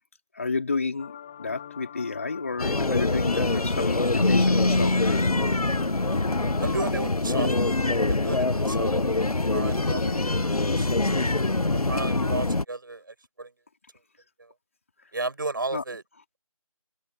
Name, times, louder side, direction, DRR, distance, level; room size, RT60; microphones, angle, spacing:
voice 1, 0.3-5.2 10.0-10.2 15.7-15.8, left 4 dB, 25° left, 3.5 m, -30 dB
sound 1, 1.0-6.9, left 9 dB, 10° left, 2.1 m, -43 dB
sound 2, 2.6-12.7, left 2 dB, 80° left, 0.9 m, -25 dB
Keyboard (musical), 4.2-6.9, left 2 dB, 45° left, 5.8 m, -27 dB
voice 2, 6.6-7.8 8.1-8.9 9.5-10.2 10.5-11.3 11.9-13.5 14.4-14.5 15.1-16.0, right 3 dB, 35° right, 6.0 m, -34 dB
figure-of-eight pair, 170°, 19 cm